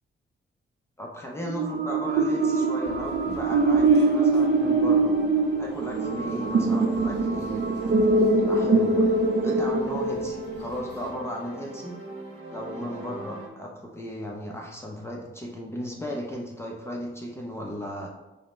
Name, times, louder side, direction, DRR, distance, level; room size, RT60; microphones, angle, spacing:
voice 1, 1.0-5.1 5.6-7.8 8.3-9.1 9.4-12.0 12.5-18.1, equal, 10° left, -1 dB, 0.5 m, -36 dB
sound 1, 1.4-10.8, right 3 dB, 50° right, 0.4 m, -23 dB
sound 2, 2.1-13.5, right 2 dB, 90° right, 0.8 m, -41 dB
sound 3, 2.8-11.1, left 2 dB, 55° left, 0.7 m, -46 dB
5.4 x 2.0 x 4.2 m, 1.0 s
wide cardioid pair, 130°, 21 cm